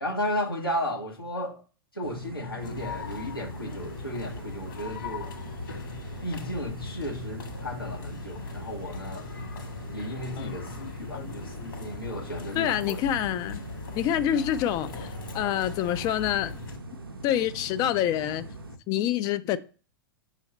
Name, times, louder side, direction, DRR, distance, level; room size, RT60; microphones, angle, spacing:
voice 1, 0.0-1.6 1.9-5.3 6.2-9.3 9.9-13.0, left 1 dB, 90° left, 1.3 m, -34 dB
sound 1, 2.0-18.8, right 2 dB, 80° right, 0.8 m, -42 dB
sound 2, 2.6-16.8, left 5 dB, 65° left, 1.7 m, -40 dB
voice 2, 12.5-13.6 14.0-16.6 17.2-18.5 18.9-19.6, left 11 dB, 30° left, 0.4 m, -27 dB
6.2 x 3.3 x 5.3 m
figure-of-eight pair, 95°, 12 cm